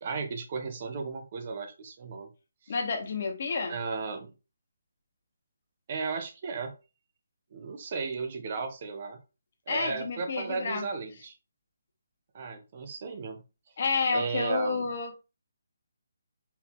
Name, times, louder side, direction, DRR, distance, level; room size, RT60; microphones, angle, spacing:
voice 1, 0.0-2.3 2.6-2.7 3.7-4.3 5.9-6.7 7.5-9.2 9.7-11.3 12.3-13.4 14.1-14.9, right 4 dB, 35° right, 0.7 m, -35 dB
voice 2, 2.7-3.7 9.7-10.9 13.8-15.2, left 4 dB, 45° left, 1.1 m, -30 dB
4.5 x 2.8 x 3.5 m
hypercardioid pair, 170°, 0 cm